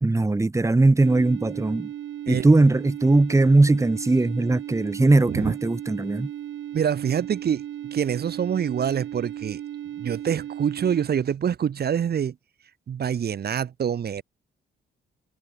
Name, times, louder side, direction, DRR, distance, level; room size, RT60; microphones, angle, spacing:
voice 1, 0.0-1.9 2.3-6.3, right 2 dB, 15° right, 2.1 m, -19 dB
sound 1, 1.0-11.1, right 11 dB, 70° right, 5.7 m, -36 dB
voice 2, 6.7-9.6 10.0-12.4 12.9-14.2, right 8 dB, 55° right, 2.4 m, -26 dB
cardioid pair, 90°, 20 cm